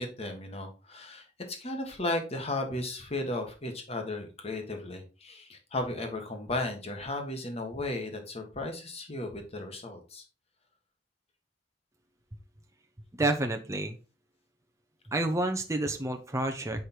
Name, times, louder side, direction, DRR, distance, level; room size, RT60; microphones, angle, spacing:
voice 1, 0.0-10.2, left 2 dB, 35° left, 4 dB, 1.6 m, -35 dB
voice 2, 13.2-14.0 15.1-16.8, right 2 dB, 15° right, 5 dB, 0.7 m, -29 dB
6.5 x 5.3 x 4.4 m, 0.33 s
head